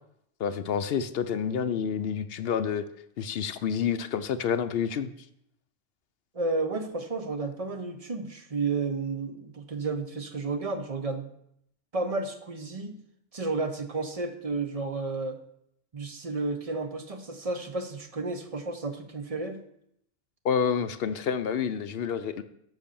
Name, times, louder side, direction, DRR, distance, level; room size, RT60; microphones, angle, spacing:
voice 1, 0.4-2.8 3.2-5.1 20.4-22.4, left 7 dB, 65° left, 11 dB, 0.8 m, -28 dB
voice 2, 6.3-11.3 11.9-13.0 13.3-15.4 15.9-19.6, right 3 dB, 35° right, 7 dB, 0.9 m, -32 dB
7.9 x 5.8 x 6.9 m, 0.74 s
omnidirectional pair, 1.2 m